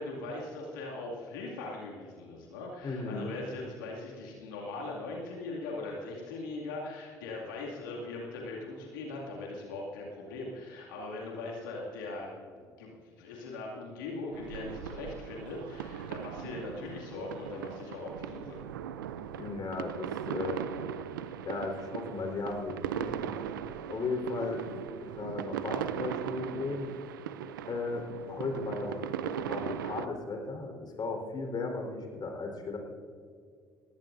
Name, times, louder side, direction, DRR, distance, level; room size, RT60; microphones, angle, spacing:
voice 1, 0.0-18.6, left 2 dB, 85° left, -2 dB, 2.3 m, -40 dB
voice 2, 2.8-3.3 19.4-20.6 21.4-23.3 23.9-24.6 25.0-26.9 27.7-32.8, left 3 dB, 45° left, 2 dB, 4.1 m, -36 dB
sound 1, 14.3-30.1, right 9 dB, 90° right, 0.5 m, -39 dB
19.5 x 16.0 x 2.6 m, 2.2 s
hypercardioid pair, 60°, 11 cm